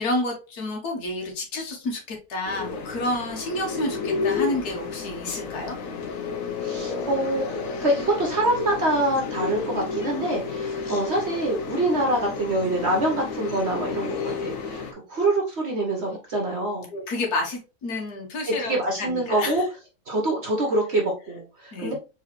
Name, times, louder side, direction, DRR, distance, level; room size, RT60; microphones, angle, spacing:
voice 1, 0.0-5.8 16.9-19.6 21.7-21.9, left 1 dB, 80° left, 0 dB, 1.7 m, -30 dB
sound 1, 2.4-14.9, left 5 dB, 60° left, 1.2 m, -31 dB
voice 2, 6.6-7.5 7.8-16.9 18.6-19.6 20.1-21.9, right 1 dB, 50° right, 0 dB, 1.1 m, -25 dB
4.5 x 3.3 x 3.1 m, 0.31 s
omnidirectional pair, 1.6 m